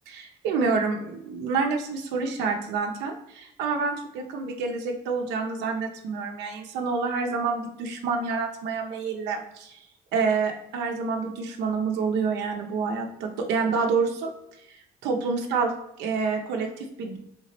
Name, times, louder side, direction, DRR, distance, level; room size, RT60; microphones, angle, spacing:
voice 1, 0.1-9.8 10.1-14.3 14.7-14.8 15.0-17.2, right 4 dB, 90° right, 2 dB, 0.7 m, -28 dB
3.6 x 3.0 x 4.2 m, 0.83 s
cardioid pair, 110°, 17 cm